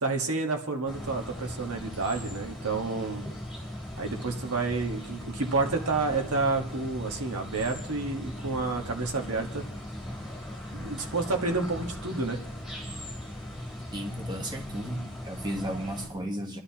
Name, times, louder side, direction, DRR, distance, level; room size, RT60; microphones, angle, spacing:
voice 1, 0.0-3.2 4.0-9.6 10.7-12.4, right 3 dB, 75° right, 3 dB, 1.5 m, -30 dB
sound 1, 0.9-16.1, left 1 dB, 5° right, 3.6 m, -39 dB
voice 2, 13.9-16.6, equal, 20° right, 2 dB, 1.3 m, -34 dB
27.0 x 11.0 x 2.9 m, 0.83 s
head